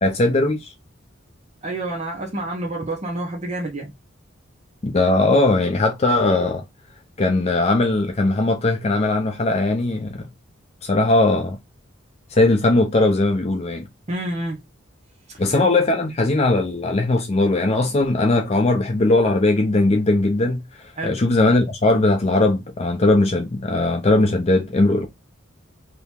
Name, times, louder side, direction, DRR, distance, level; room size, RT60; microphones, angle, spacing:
voice 1, 0.0-0.7 4.8-6.6 7.2-10.3 10.8-11.6 12.3-13.9 15.4-20.6 21.0-25.1, left 2 dB, 35° left, 0.5 m, -19 dB
voice 2, 1.6-3.9 14.1-14.6 15.3-15.4 21.0-21.2, right 1 dB, 35° right, 0.8 m, -28 dB
2.8 x 2.6 x 3.5 m
head